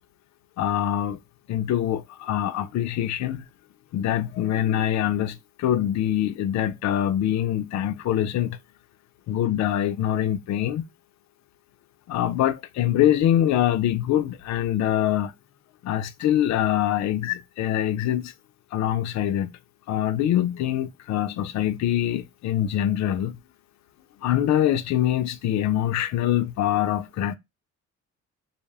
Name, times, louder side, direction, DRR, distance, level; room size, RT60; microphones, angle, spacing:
voice 1, 0.6-1.2 1.5-3.4 3.9-8.6 9.3-10.8 12.1-15.3 15.8-18.3 18.7-19.5 19.9-23.4 24.2-27.4, left 11 dB, 65° left, 0.4 m, -24 dB
2.0 x 2.0 x 3.3 m
cardioid pair, 90°, 30 cm